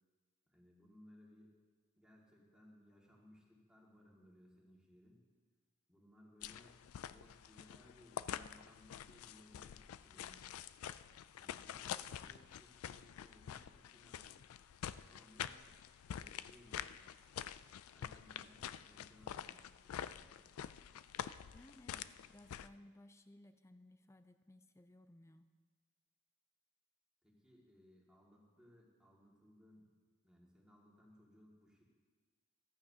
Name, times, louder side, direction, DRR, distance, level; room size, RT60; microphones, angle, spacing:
voice 1, 0.5-1.5 2.0-5.2 5.9-10.6 11.3-14.4 15.1-15.6 16.1-17.0 17.9-20.5 27.2-29.8 30.2-31.8, left 1 dB, 5° right, -4 dB, 2.1 m, -64 dB
sound 1, 6.4-22.7, left 9 dB, 85° left, 0.3 m, -47 dB
voice 2, 21.5-25.5, left 1 dB, 15° left, 10 dB, 0.4 m, -61 dB
14.5 x 14.5 x 2.8 m, 1.5 s
head